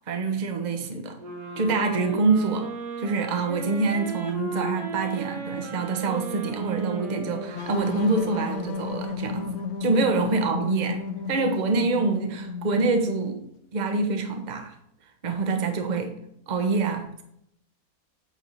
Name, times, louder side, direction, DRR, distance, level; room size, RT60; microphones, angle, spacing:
voice 1, 0.1-1.2 1.6-2.7 3.0-11.0 11.3-14.7 15.2-16.1 16.5-17.2, right 3 dB, 35° right, 5 dB, 0.9 m, -26 dB
sound 1, 1.2-8.9, right 3 dB, 80° right, 2.0 m, -35 dB
sound 2, 7.5-13.2, left 4 dB, 75° left, 1.3 m, -33 dB
8.5 x 3.5 x 5.4 m, 0.74 s
omnidirectional pair, 1.6 m